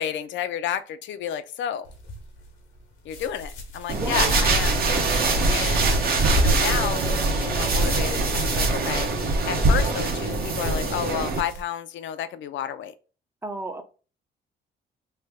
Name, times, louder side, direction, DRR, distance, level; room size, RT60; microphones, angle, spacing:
voice 1, 0.0-1.9 3.0-4.8 5.1-5.9 6.4-12.9, left 9 dB, 70° left, 0.4 m, -31 dB
sound 1, 1.8-11.6, equal, 90° left, 0.9 m, -36 dB
voice 2, 3.9-4.3 5.3-5.6 13.4-13.8, right 2 dB, 10° right, 0.5 m, -33 dB
sound 2, 3.9-11.4, right 2 dB, 50° right, 0.8 m, -23 dB
3.2 x 2.2 x 3.5 m
cardioid pair, 90°, 20 cm